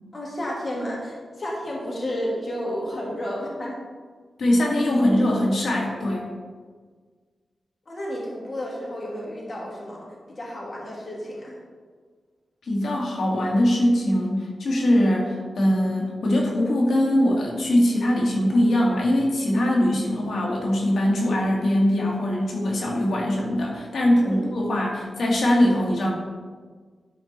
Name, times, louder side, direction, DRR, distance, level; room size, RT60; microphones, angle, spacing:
voice 1, 0.1-3.8 7.9-11.5 24.2-24.4, equal, 45° left, -4 dB, 2.5 m, -32 dB
voice 2, 4.4-6.3 12.6-26.1, left 1 dB, 85° left, -2 dB, 2.3 m, -22 dB
12.0 x 4.6 x 4.5 m, 1.5 s
wide cardioid pair, 95°, 0 cm